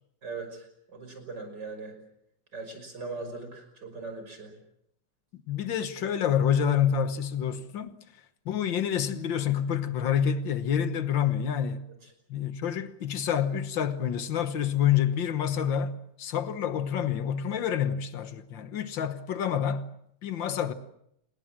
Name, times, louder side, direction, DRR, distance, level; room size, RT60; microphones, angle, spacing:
voice 1, 0.2-2.0 2.5-4.5, right 3 dB, 65° right, 6.2 m, -40 dB
voice 2, 5.5-8.0 8.5-11.9 12.3-19.9 20.2-20.7, left 8 dB, 85° left, 2.0 m, -28 dB
28.5 x 20.5 x 7.6 m
omnidirectional pair, 2.0 m